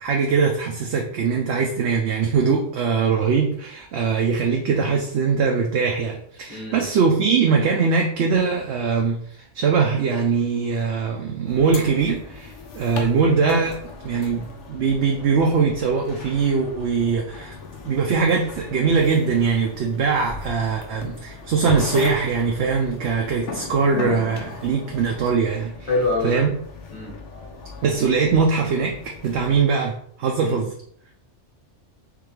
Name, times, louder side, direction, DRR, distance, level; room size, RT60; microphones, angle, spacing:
voice 1, 0.0-9.2 9.5-17.5 17.8-25.9 26.2-26.5 27.8-30.7, right 5 dB, 70° right, 0 dB, 0.8 m, -21 dB
voice 2, 6.5-6.8 14.1-14.2 25.9-26.4 26.9-27.2 30.4-30.7, left 2 dB, 35° left, -5 dB, 1.3 m, -25 dB
sound 1, 11.5-29.6, left 4 dB, 75° left, 1.1 m, -37 dB
3.7 x 3.3 x 3.2 m, 0.63 s
omnidirectional pair, 1.2 m